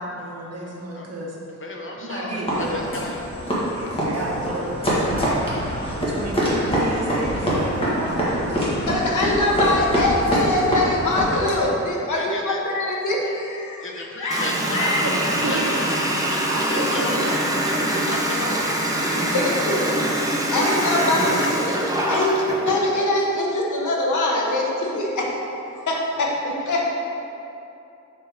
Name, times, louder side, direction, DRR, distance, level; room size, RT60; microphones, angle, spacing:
voice 1, 0.0-1.4 2.0-2.9 3.7-9.0 14.8-15.9 16.5-17.3 18.2-18.3 19.2-19.4 20.2-21.4, right 1 dB, 55° right, -3 dB, 1.1 m, -31 dB
voice 2, 0.7-1.1 1.6-3.3 12.1-12.6 13.8-14.9 15.3-15.6 16.3-17.4 17.6-18.7 26.2-26.4 26.7-26.9, left 2 dB, 45° left, 0 dB, 0.8 m, -34 dB
sound 1, 2.5-11.7, equal, 20° left, 1.4 m, -24 dB
voice 3, 8.9-14.4 14.7-15.0 19.2-19.9 20.5-21.8 22.1-25.3 25.7-26.8, left 2 dB, 85° left, -2 dB, 1.1 m, -23 dB
Water tap faucet, 14.3-22.8, right 1 dB, 10° right, 0.6 m, -24 dB
6.7 x 5.4 x 3.4 m, 2.8 s
wide cardioid pair, 150°, 29 cm